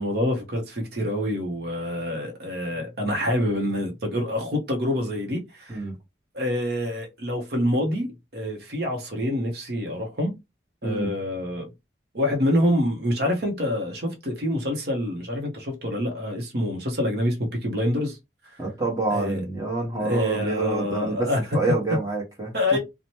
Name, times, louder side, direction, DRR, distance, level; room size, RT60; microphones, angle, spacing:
voice 1, 0.0-5.8 6.3-10.4 10.8-11.7 12.1-18.2 18.4-18.6 19.1-19.4 20.0-21.4 22.5-22.8, left 1 dB, 60° right, 0.8 m, -26 dB
voice 2, 18.6-21.3 21.5-22.5, right 2 dB, 20° right, 1.1 m, -27 dB
2.9 x 2.1 x 2.9 m
head